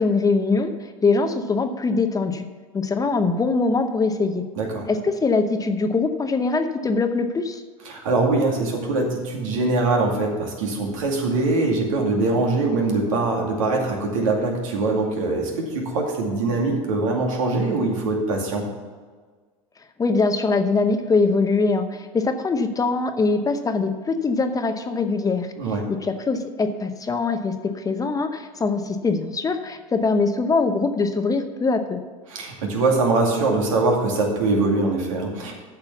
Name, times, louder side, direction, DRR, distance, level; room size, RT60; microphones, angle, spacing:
voice 1, 0.0-2.5 2.7-4.4 4.9-7.6 20.0-25.5 26.0-32.0, left 4 dB, 20° left, 8 dB, 0.8 m, -22 dB
voice 2, 7.8-18.7 25.6-25.8 32.3-35.5, right 3 dB, 75° right, 0 dB, 2.4 m, -22 dB
8.1 x 6.7 x 6.9 m, 1.5 s
hypercardioid pair, 85°, 17 cm